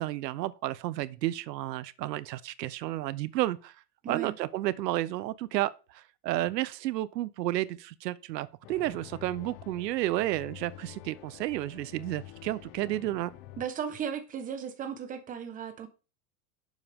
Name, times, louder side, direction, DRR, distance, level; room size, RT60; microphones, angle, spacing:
voice 1, 0.0-3.7 4.1-13.3, right 15 dB, 90° right, 0.8 m, -32 dB
voice 2, 4.0-4.3 13.6-15.9, right 7 dB, 15° right, 1.1 m, -36 dB
sound 1, 8.6-13.7, left 14 dB, 35° left, 0.7 m, -48 dB
10.5 x 7.3 x 3.5 m
supercardioid pair, 160°, 48 cm